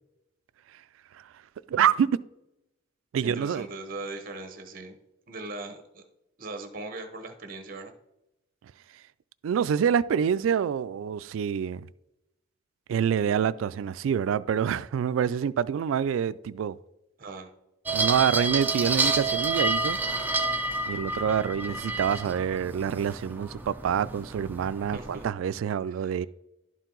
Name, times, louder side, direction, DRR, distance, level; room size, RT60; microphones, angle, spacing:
voice 1, 1.7-2.2 3.1-3.7 9.4-11.9 12.9-16.8 17.9-20.0 20.9-26.3, right 8 dB, 85° right, 0.3 m, -26 dB
voice 2, 3.2-5.0 5.3-6.0 6.4-7.9 17.2-17.5 24.9-25.2 25.9-26.2, right 2 dB, 45° right, 0.9 m, -39 dB
sound 1, 17.9-25.3, right 3 dB, 10° right, 0.5 m, -29 dB
11.5 x 4.6 x 3.9 m
head